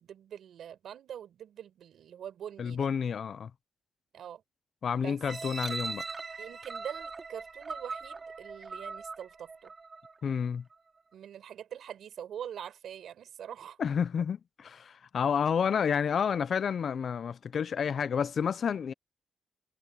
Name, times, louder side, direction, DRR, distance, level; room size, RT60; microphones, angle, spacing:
voice 1, 0.0-2.8 4.1-4.4 4.9-5.2 6.4-9.7 11.1-13.8, right 9 dB, 80° right, 5.3 m, -44 dB
voice 2, 2.6-3.5 4.8-6.0 10.2-10.6 13.8-18.9, left 7 dB, 60° left, 0.6 m, -30 dB
sound 1, 5.2-10.2 10.7-10.8, right 4 dB, 35° right, 2.7 m, -40 dB
cardioid pair, 90°, 0 cm